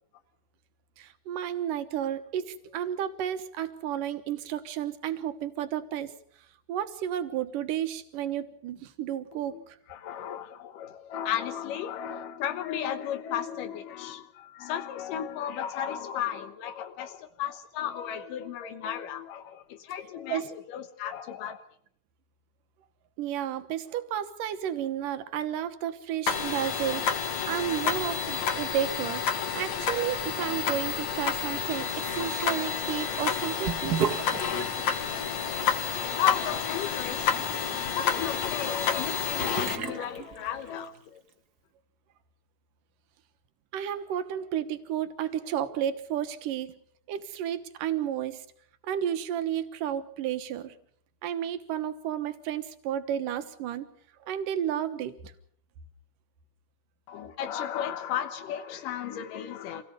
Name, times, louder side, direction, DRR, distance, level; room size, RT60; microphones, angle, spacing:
voice 1, 1.0-6.1 6.7-9.8 20.3-20.5 23.2-34.1 43.7-46.8 47.1-48.5 48.8-50.8 51.2-53.9 54.2-55.3, right 10 dB, 85° right, 2.9 m, -32 dB
voice 2, 9.5-21.6 36.0-41.2 57.1-59.8, left 10 dB, 90° left, 2.8 m, -34 dB
sound 1, 26.3-39.8, left 7 dB, 60° left, 2.8 m, -30 dB
Sink (filling or washing) / Bathtub (filling or washing), 33.6-41.0, right 7 dB, 50° right, 1.2 m, -37 dB
27.0 x 17.5 x 6.8 m
omnidirectional pair, 3.7 m